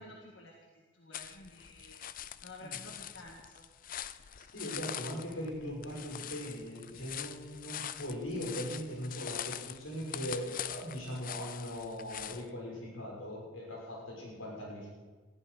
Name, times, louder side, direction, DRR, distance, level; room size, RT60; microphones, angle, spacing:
voice 1, 0.0-2.0 2.4-3.7, left 1 dB, 65° left, 0 dB, 1.7 m, -52 dB
sound 1, 1.1-12.5, left 10 dB, 45° left, 0.5 m, -43 dB
voice 2, 4.5-14.9, equal, 90° left, -3 dB, 6.5 m, -40 dB
19.5 x 14.5 x 5.1 m, 1.3 s
head